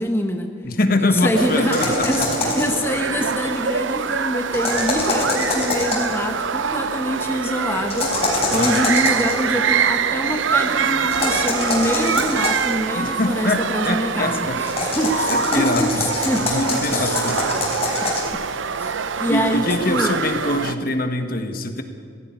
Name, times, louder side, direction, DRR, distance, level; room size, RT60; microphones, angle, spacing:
voice 1, 0.0-0.7 1.0-17.2 18.8-18.9 19.2-20.1, left 1 dB, 10° left, 4 dB, 1.1 m, -25 dB
voice 2, 0.6-2.5 8.5-8.8 12.9-14.6 15.3-16.1 16.4-17.4 19.3-21.8, left 2 dB, 50° left, 7 dB, 1.6 m, -23 dB
sound 1, 1.3-20.8, right 6 dB, 85° right, 0.7 m, -24 dB
sound 2, 1.7-2.8 4.5-6.1 7.9-9.3 11.1-12.7 14.6-18.3, left 3 dB, 30° left, 4.7 m, -24 dB
17.5 x 16.0 x 9.6 m, 2.1 s
head